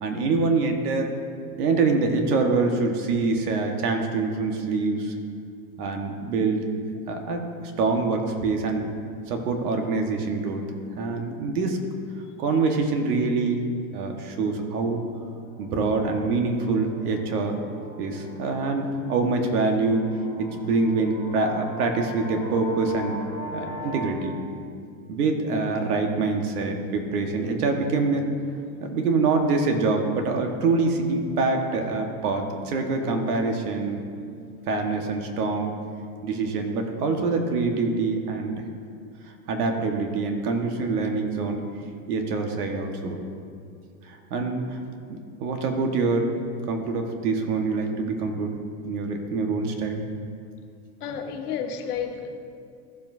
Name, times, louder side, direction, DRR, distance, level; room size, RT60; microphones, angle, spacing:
voice 1, 0.0-1.1 1.6-5.1 5.8-6.7 7.1-8.9 9.3-10.6 11.0-11.8 12.4-13.6 13.9-15.0 15.6-17.6 18.0-20.1 20.4-23.2 23.5-24.4 25.1-28.3 28.8-34.0 34.7-35.7 36.2-38.6 39.5-41.6 42.1-43.2 44.1-44.8 45.1-46.3 46.7-48.6 48.8-50.0, right 3 dB, 80° right, 3 dB, 1.6 m, -25 dB
sound 1, 15.1-24.1, left 1 dB, 40° left, 1.9 m, -41 dB
voice 2, 51.0-52.4, left 7 dB, 85° left, 4 dB, 1.2 m, -31 dB
15.0 x 7.5 x 2.7 m, 2.3 s
supercardioid pair, 120°, 45 cm